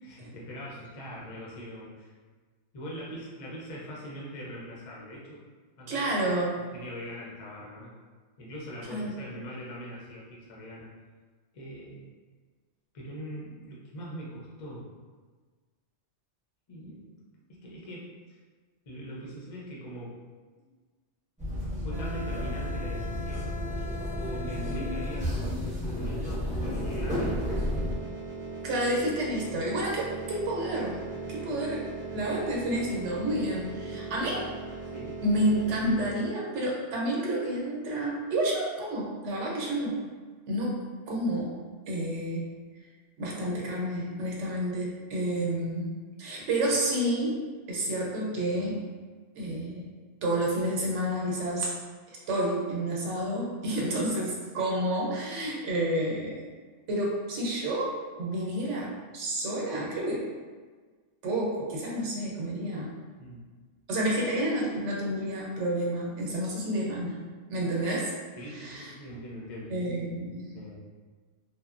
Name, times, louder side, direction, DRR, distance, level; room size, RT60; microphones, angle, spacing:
voice 1, 0.0-2.1 2.7-5.4 5.8-6.1 6.6-8.0 8.4-10.9 11.5-12.1 12.9-14.9 16.7-17.1 17.5-18.1 18.9-20.2 20.6-20.7 21.5-23.5 24.2-25.5 25.8-27.6 34.1-34.4 34.9-35.2 45.6-45.7 63.2-63.4 68.4-69.7 70.5-70.8, equal, 45° left, -5 dB, 0.5 m, -42 dB
voice 2, 5.9-6.6 8.9-9.1 28.6-31.0 31.3-34.5 35.2-40.0 40.5-41.6 41.9-42.5 43.2-47.4 47.7-48.8 49.4-49.9 50.2-51.7 52.1-56.4 56.9-60.2 61.2-62.9 63.9-67.2 67.5-68.1 68.5-68.9 69.7-70.6, right 1 dB, 80° right, -3 dB, 1.0 m, -30 dB
sound 1, 21.4-28.0, left 1 dB, 10° right, 0.5 m, -31 dB
sound 2, 26.8-36.1, right 3 dB, 55° right, 0.6 m, -39 dB
2.8 x 2.1 x 2.4 m, 1.4 s
omnidirectional pair, 1.2 m